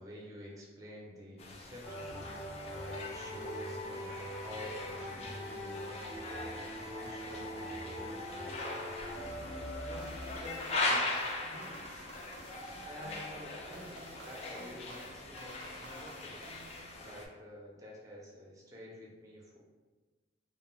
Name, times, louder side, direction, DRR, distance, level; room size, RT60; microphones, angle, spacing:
voice 1, 0.0-2.3 2.7-8.6 9.0-12.0 12.8-16.4 17.0-19.6, equal, 20° right, -3 dB, 0.5 m, -50 dB
sound 1, 1.4-17.2, left 2 dB, 35° left, 0.3 m, -41 dB
sound 2, 1.8-10.8, equal, 80° left, 0.7 m, -42 dB
sound 3, 10.0-17.4, right 2 dB, 75° right, 0.4 m, -53 dB
2.2 x 2.0 x 3.7 m, 1.3 s
head